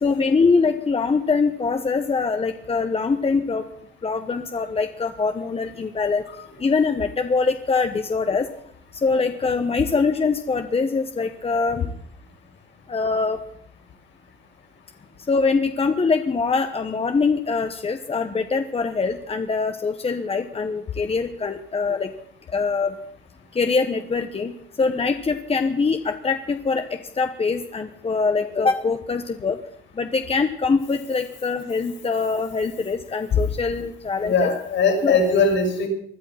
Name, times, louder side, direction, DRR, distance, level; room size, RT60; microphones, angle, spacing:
voice 1, 0.0-3.7 4.0-6.2 6.6-8.5 9.0-11.9 12.9-13.4 15.3-22.1 22.5-23.0 23.5-29.6 29.9-34.5 35.0-35.2, left 4 dB, 30° left, 7 dB, 1.2 m, -23 dB
voice 2, 34.2-35.9, left 4 dB, 75° left, 4 dB, 6.5 m, -20 dB
20.5 x 11.5 x 5.9 m, 0.67 s
cardioid pair, 90°, 20 cm